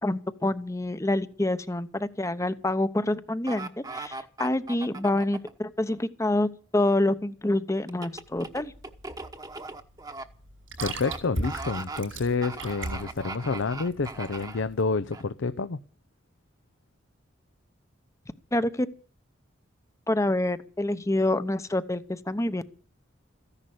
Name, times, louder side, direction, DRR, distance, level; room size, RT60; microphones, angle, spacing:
voice 1, 0.0-6.5 6.7-8.7 18.5-18.9 20.1-22.6, left 1 dB, 15° left, 0.8 m, -27 dB
sound 1, 3.5-5.5 7.9-10.2 10.8-11.2 11.4-12.0 12.4-14.6 15.1-15.2, right 3 dB, 20° right, 1.1 m, -38 dB
sound 2, 8.1-14.9, right 2 dB, 85° right, 6.0 m, -38 dB
voice 2, 10.8-15.8, left 4 dB, 80° left, 0.6 m, -29 dB
15.0 x 11.0 x 7.8 m
head